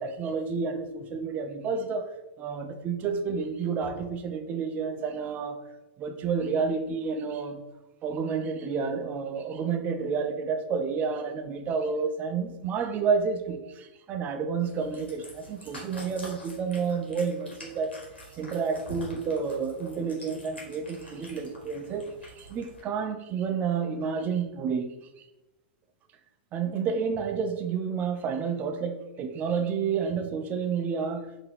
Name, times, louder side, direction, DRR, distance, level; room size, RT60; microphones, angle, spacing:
voice 1, 0.0-2.1 2.4-5.6 6.0-7.6 8.0-18.0 18.4-24.9 26.5-31.3, right 5 dB, 30° right, 0.5 m, -30 dB
Cat, 14.6-22.8, equal, 85° left, 1.4 m, -47 dB
4.4 x 2.8 x 3.4 m
figure-of-eight pair, 100°, 6 cm